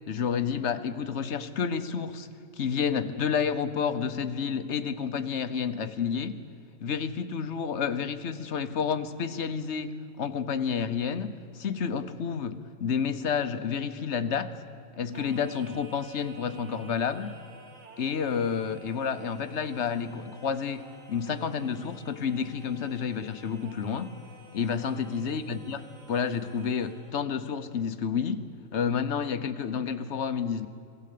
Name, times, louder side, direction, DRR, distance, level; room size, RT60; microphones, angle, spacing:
voice 1, 0.1-2.3 2.6-6.4 6.8-14.5 15.0-17.4 18.0-20.8 21.1-24.1 24.5-25.8 26.1-30.7, left 6 dB, 60° left, 11 dB, 1.2 m, -30 dB
Singing, 15.1-27.2, right 2 dB, 70° right, 2.1 m, -52 dB
21.5 x 16.5 x 8.4 m, 2.6 s
omnidirectional pair, 1.4 m